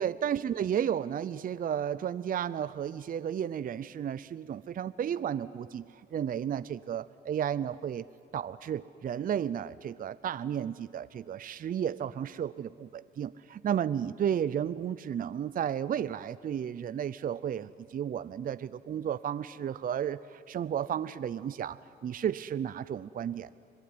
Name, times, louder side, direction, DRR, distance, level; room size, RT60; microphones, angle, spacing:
voice 1, 0.0-8.0 8.3-23.6, right 9 dB, 45° right, 15 dB, 0.5 m, -33 dB
26.5 x 18.0 x 9.7 m, 2.5 s
cardioid pair, 90°, 20 cm